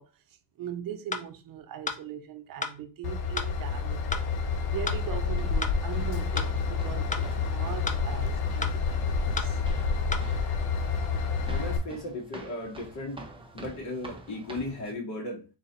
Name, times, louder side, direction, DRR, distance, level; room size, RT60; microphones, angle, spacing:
voice 1, 0.0-4.2 4.7-9.0 9.4-9.6, right 9 dB, 60° right, 0.7 m, -40 dB
sound 1, 1.1-1.2 1.9-2.0 2.6-2.8 3.4-3.5 4.1-4.2 4.9-5.0 5.6-5.7 6.4-6.5 7.1-7.3 7.9-8.0 8.6-8.8 9.4-9.5 10.1-10.3, left 4 dB, 20° left, 0.5 m, -32 dB
Train / Engine, 3.0-11.8, left 5 dB, 75° left, 0.9 m, -29 dB
sound 2, 5.1-14.9, right 2 dB, 15° right, 0.9 m, -47 dB
voice 2, 11.4-13.2 13.5-15.5, left 2 dB, 45° left, 2.3 m, -36 dB
3.9 x 2.9 x 4.0 m
cardioid pair, 110°, 39 cm